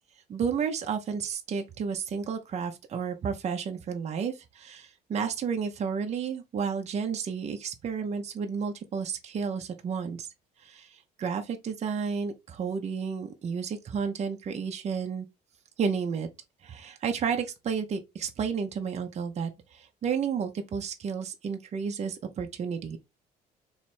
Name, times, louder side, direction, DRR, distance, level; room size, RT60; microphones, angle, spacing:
voice 1, 0.3-10.3 10.6-15.3 15.8-16.3 16.6-23.0, right 6 dB, 40° right, 0.7 m, -32 dB
3.2 x 3.0 x 4.3 m
cardioid pair, 110°, 17 cm